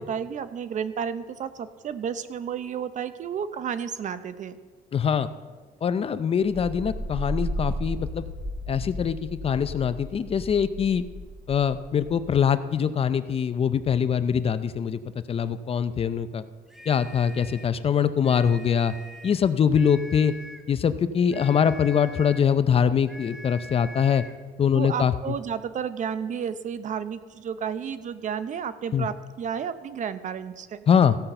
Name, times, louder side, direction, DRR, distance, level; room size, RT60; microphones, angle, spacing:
voice 1, 0.0-4.6 24.7-30.8, right 7 dB, 45° right, 13 dB, 0.7 m, -32 dB
voice 2, 4.9-5.3 5.8-8.3 8.7-11.1 11.5-16.4 16.9-18.9 19.2-20.3 20.7-24.2 24.6-25.1 28.9-29.1 30.9-31.2, left 7 dB, 35° left, 13 dB, 0.5 m, -23 dB
sound 1, 6.4-12.5, equal, 20° right, 3.6 m, -34 dB
sound 2, 16.7-17.8 18.2-19.5 19.7-20.7 21.3-22.5 23.1-24.4, left 1 dB, ahead, 1.1 m, -44 dB
15.0 x 5.7 x 6.7 m, 1.4 s
cardioid pair, 110°, 17 cm